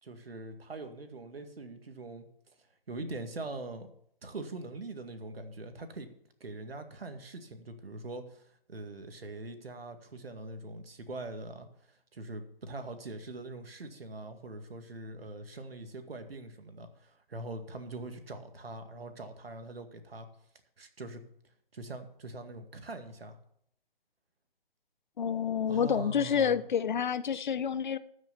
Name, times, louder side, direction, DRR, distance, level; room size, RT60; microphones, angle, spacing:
voice 1, 0.0-2.3 2.9-3.9 4.2-6.1 6.4-20.3 20.8-21.2 21.7-23.4 25.7-26.7, right 2 dB, 80° right, 2.1 m, -43 dB
voice 2, 25.2-28.0, left 7 dB, 55° left, 0.7 m, -29 dB
13.5 x 6.3 x 7.1 m
hypercardioid pair, 155°, 29 cm